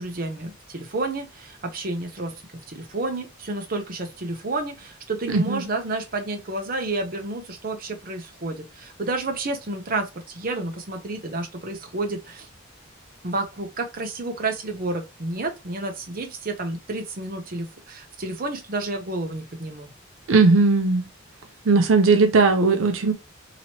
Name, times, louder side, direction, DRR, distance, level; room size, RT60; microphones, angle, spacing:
voice 1, 0.0-2.3 2.7-12.5 13.2-19.9, right 2 dB, 45° right, 0.7 m, -30 dB
voice 2, 5.3-5.6 20.3-21.0 21.6-23.1, right 3 dB, 80° right, 0.6 m, -18 dB
2.9 x 2.9 x 2.9 m
head